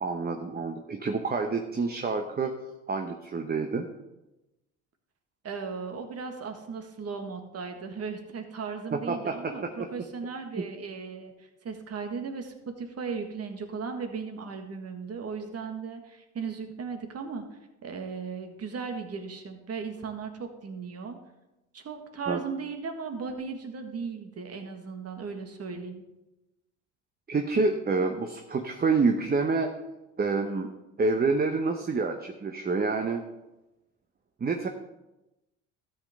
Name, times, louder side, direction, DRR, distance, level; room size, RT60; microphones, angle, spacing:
voice 1, 0.0-2.5 2.9-3.9 8.9-9.7 10.6-10.7 22.3-22.4 27.3-29.7 30.2-30.7 31.0-33.2 34.4-34.7, right 4 dB, 25° right, 5 dB, 1.0 m, -27 dB
voice 2, 5.4-17.4 17.8-21.2 21.7-26.0, right 5 dB, 40° right, 6 dB, 1.8 m, -37 dB
13.0 x 7.9 x 3.6 m, 1.0 s
hypercardioid pair, 65°, 36 cm